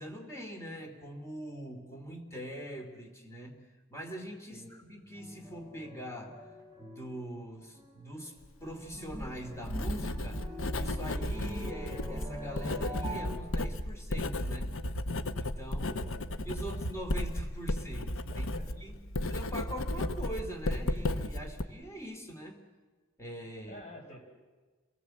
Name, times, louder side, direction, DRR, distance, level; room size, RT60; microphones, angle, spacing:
voice 1, 0.0-6.4 6.8-14.7 15.4-16.0 16.4-18.5 18.7-22.6 23.2-23.8, equal, 15° left, 3 dB, 2.9 m, -43 dB
sound 1, 5.2-7.5 7.7-8.3 8.6-13.3, equal, 15° right, 5.0 m, -44 dB
Writing, 8.9-21.6, left 1 dB, 65° left, 1.0 m, -34 dB
voice 2, 15.8-16.3 16.6-16.7 18.3-18.7 23.7-24.2, left 1 dB, 30° left, 0 dB, 5.6 m, -50 dB
28.0 x 19.0 x 7.9 m, 1.3 s
head